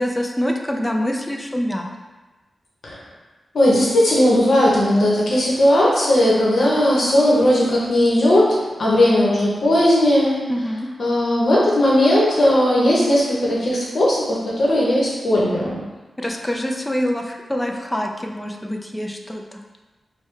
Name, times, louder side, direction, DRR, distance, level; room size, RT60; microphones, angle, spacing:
voice 1, 0.0-1.9 10.5-10.9 16.2-19.4, equal, 10° left, 2 dB, 0.4 m, -25 dB
voice 2, 3.5-8.5 8.8-10.4 11.0-15.8, left 1 dB, 60° left, -5 dB, 0.9 m, -17 dB
4.5 x 2.2 x 3.3 m, 1.2 s
wide cardioid pair, 135°, 0 cm